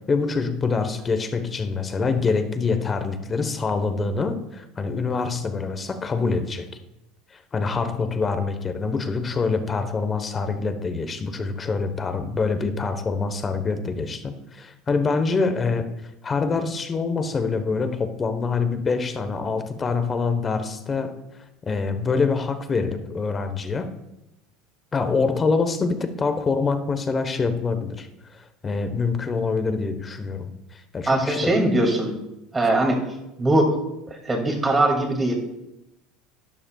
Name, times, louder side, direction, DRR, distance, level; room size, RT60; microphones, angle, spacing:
voice 1, 0.1-6.7 7.3-15.9 16.2-21.2 21.7-23.9 24.9-28.1 28.6-31.6, left 4 dB, 25° left, 9 dB, 1.1 m, -25 dB
voice 2, 31.1-32.2 32.5-33.0 33.4-33.7 34.1-35.3, right 1 dB, 15° right, 2 dB, 2.4 m, -21 dB
12.5 x 11.0 x 2.3 m, 0.91 s
supercardioid pair, 120°, 0 cm